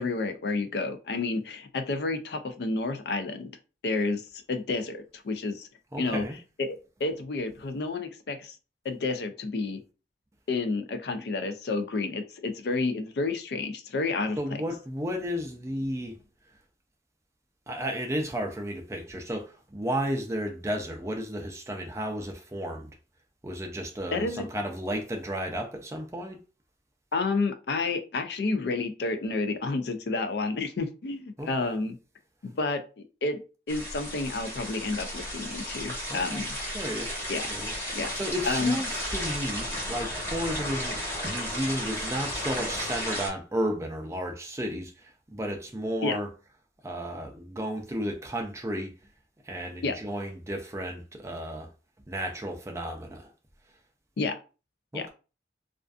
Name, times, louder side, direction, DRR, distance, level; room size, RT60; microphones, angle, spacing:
voice 1, 0.0-3.5 3.8-4.2 4.5-5.7 6.0-6.2 6.6-8.6 8.8-9.8 10.5-14.4 24.1-24.5 27.1-32.0 32.4-33.4 33.7-36.6 37.3-37.5 37.9-38.1 38.4-38.8 46.0-46.2 49.8-49.9 54.2-54.3 54.9-55.1, left 3 dB, 65° left, 0.4 m, -30 dB
voice 2, 5.9-6.4 14.4-16.2 17.7-22.9 23.4-26.4 31.4-31.8 36.1-36.4 36.7-46.3 46.8-48.9 49.4-51.7 52.1-53.3 54.9-55.1, equal, 15° right, 0.4 m, -33 dB
sound 1, 33.7-43.3, equal, 15° left, 0.9 m, -34 dB
2.4 x 2.4 x 2.3 m
head